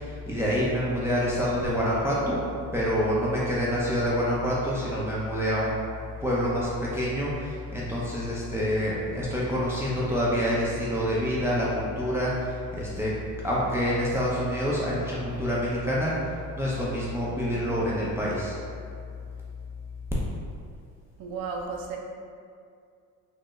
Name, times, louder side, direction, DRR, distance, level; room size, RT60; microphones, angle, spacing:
voice 1, 0.0-2.4 2.7-5.8 6.2-13.1 13.4-18.6, equal, 5° right, -7 dB, 0.5 m, -27 dB
voice 2, 21.2-22.0, right 5 dB, 60° right, 0 dB, 0.6 m, -33 dB
3.5 x 2.1 x 3.0 m, 2.3 s
supercardioid pair, 85°, 39 cm